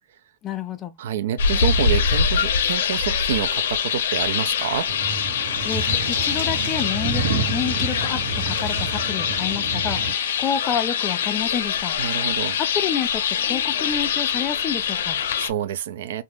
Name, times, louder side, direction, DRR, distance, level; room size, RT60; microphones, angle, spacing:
voice 1, 0.4-0.9 5.6-11.9 12.6-15.2, left 8 dB, 15° left, 0.4 m, -29 dB
voice 2, 1.0-4.9 12.0-12.6 15.4-16.2, right 10 dB, 55° right, 0.4 m, -27 dB
sound 1, 1.4-15.5, left 7 dB, 65° left, 0.5 m, -24 dB
sound 2, 4.9-10.1, right 3 dB, 80° right, 1.2 m, -29 dB
2.5 x 2.4 x 3.4 m
supercardioid pair, 180°, 0 cm